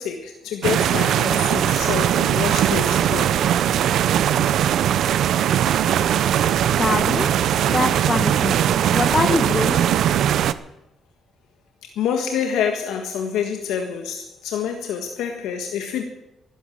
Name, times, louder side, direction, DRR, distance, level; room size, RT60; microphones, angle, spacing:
voice 1, 0.0-3.3 11.8-16.0, left 7 dB, 90° left, 4 dB, 1.6 m, -27 dB
sound 1, 0.6-10.5, right 10 dB, 75° right, 0.7 m, -20 dB
voice 2, 6.8-7.3 7.6-8.5 8.9-9.8, left 3 dB, 30° left, 6 dB, 1.3 m, -23 dB
12.0 x 11.5 x 8.7 m, 0.90 s
cardioid pair, 90°, 0 cm